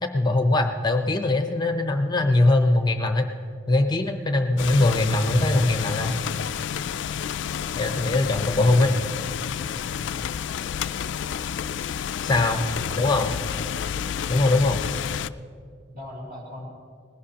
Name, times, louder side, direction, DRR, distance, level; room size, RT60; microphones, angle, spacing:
voice 1, 0.0-3.3 3.7-6.2 7.7-9.0 12.2-12.6 13.0-13.3 14.3-14.8, left 2 dB, 25° left, 6 dB, 0.6 m, -21 dB
sound 1, 4.6-15.3, left 8 dB, 70° left, 0.3 m, -30 dB
voice 2, 12.9-13.3 15.9-16.7, left 1 dB, 45° right, -8 dB, 3.2 m, -39 dB
20.0 x 17.0 x 2.9 m, 2.2 s
head